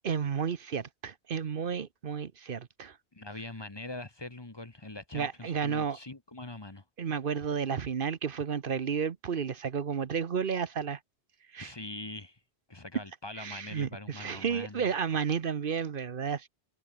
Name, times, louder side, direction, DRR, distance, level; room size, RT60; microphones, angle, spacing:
voice 1, 0.0-3.0 5.1-6.0 7.0-11.0 11.5-11.7 13.4-16.5, right 7 dB, 55° right, 1.0 m, -32 dB
voice 2, 3.1-6.8 11.6-12.4 12.7-14.9, left 2 dB, 20° left, 1.3 m, -43 dB
omnidirectional pair, 1.2 m